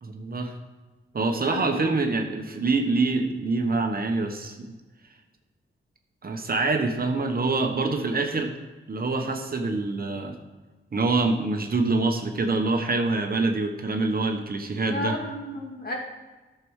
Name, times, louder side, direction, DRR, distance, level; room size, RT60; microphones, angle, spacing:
voice 1, 0.0-0.5 1.1-4.7 6.2-8.5 8.9-10.4 10.9-15.2, right 3 dB, 45° right, 4 dB, 1.1 m, -25 dB
voice 2, 1.5-1.8 14.9-15.9, left 1 dB, 45° left, -1 dB, 2.4 m, -32 dB
12.0 x 6.9 x 4.8 m, 1.2 s
wide cardioid pair, 95°, 21 cm